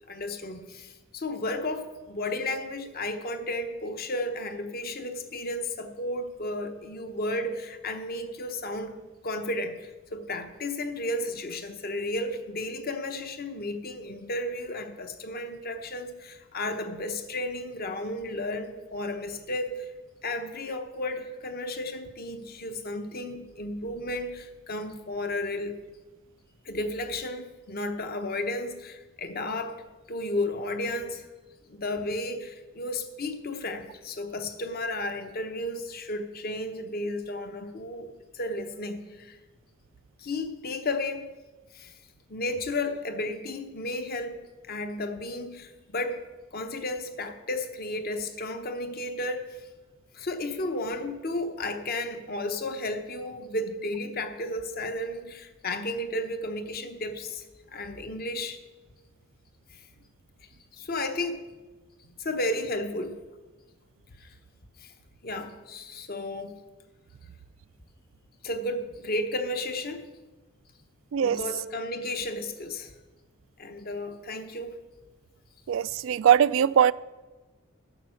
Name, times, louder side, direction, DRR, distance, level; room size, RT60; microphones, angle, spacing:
voice 1, 0.1-9.0 9.2-19.9 20.2-25.8 26.6-29.8 30.1-31.3 31.7-39.4 40.2-41.3 41.7-41.9 42.3-44.4 44.7-46.2 46.5-49.7 50.1-58.6 59.7-59.8 60.7-61.4 62.2-63.2 64.2-64.4 64.8-64.9 65.2-66.6 68.4-70.0 71.2-72.9 73.6-74.8, left 1 dB, 45° left, 0.9 m, -33 dB
voice 2, 75.7-76.9, right 9 dB, 65° right, 0.3 m, -21 dB
11.0 x 7.3 x 6.4 m
head